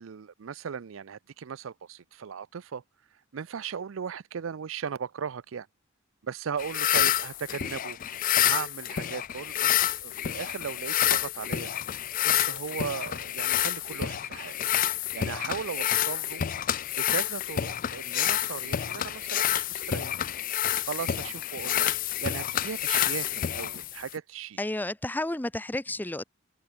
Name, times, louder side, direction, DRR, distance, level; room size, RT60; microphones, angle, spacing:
voice 1, 0.0-2.8 3.3-5.7 6.2-8.0 8.4-11.7 12.2-14.5 15.1-16.4 17.0-20.2 20.9-21.9 22.2-24.6, right 7 dB, 80° right, 0.5 m, -37 dB
sound 1, 6.6-24.2, left 11 dB, 45° left, 0.4 m, -28 dB
voice 2, 24.6-26.2, left 1 dB, 10° left, 0.7 m, -31 dB
open air
head